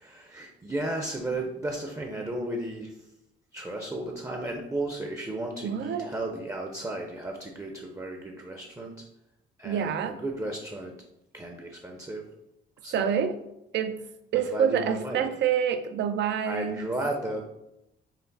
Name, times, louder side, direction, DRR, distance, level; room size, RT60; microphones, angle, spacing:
voice 1, 0.0-3.0 3.5-8.9 9.6-10.9 11.3-12.2 12.8-13.2 14.3-15.3 16.5-17.4, right 1 dB, 15° right, 2 dB, 0.6 m, -34 dB
voice 2, 5.6-6.1 9.6-10.2 12.9-13.4 13.7-14.0 14.3-16.9, right 8 dB, 65° right, 9 dB, 0.5 m, -27 dB
5.7 x 2.0 x 4.0 m, 0.85 s
cardioid pair, 90°, 20 cm